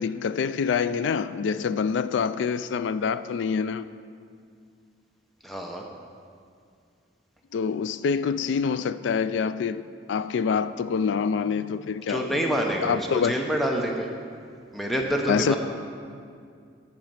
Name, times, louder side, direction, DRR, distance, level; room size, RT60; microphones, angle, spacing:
voice 1, 0.0-3.8 7.5-9.8 10.1-12.3 12.8-13.3 15.3-15.6, left 6 dB, 80° left, 0.3 m, -26 dB
voice 2, 5.4-5.8 12.1-14.1 14.7-15.6, equal, ahead, 0.7 m, -27 dB
10.5 x 4.2 x 7.5 m
head